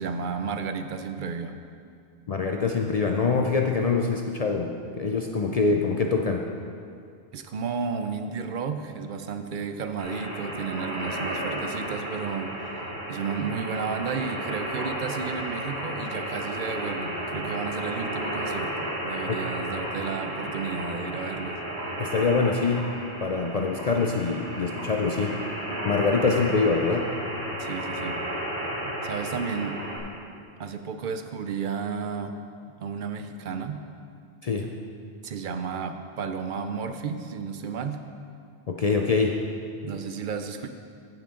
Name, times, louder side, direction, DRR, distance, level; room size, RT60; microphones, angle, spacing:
voice 1, 0.0-1.6 7.3-12.5 13.1-21.6 27.6-28.2 28.8-29.8 30.6-32.4 32.8-33.8 35.2-38.0 39.8-40.7, right 5 dB, 55° right, 8 dB, 0.6 m, -32 dB
voice 2, 2.3-6.4 19.3-19.4 22.0-22.9 23.2-25.4 25.8-27.1 34.4-34.7 38.7-39.4, left 4 dB, 50° left, 2 dB, 0.5 m, -24 dB
sound 1, 10.0-30.0, right 1 dB, 75° right, 2.1 m, -33 dB
15.0 x 6.0 x 3.8 m, 2.4 s
omnidirectional pair, 1.2 m